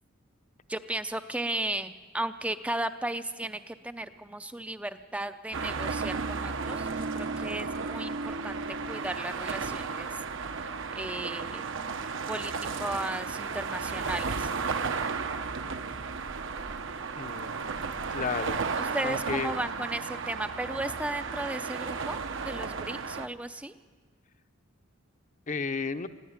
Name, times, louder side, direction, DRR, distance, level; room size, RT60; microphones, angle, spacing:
voice 1, 0.7-8.6 8.9-10.1 10.9-11.6 12.3-14.9 18.8-23.7, right 1 dB, 5° right, 10 dB, 0.5 m, -35 dB
sound 1, 5.5-23.3, right 4 dB, 65° right, 1.0 m, -34 dB
voice 2, 17.2-17.6 18.1-18.6 19.0-19.5 25.5-26.1, left 4 dB, 40° left, 10 dB, 0.8 m, -32 dB
21.5 x 14.5 x 9.5 m, 1.4 s
head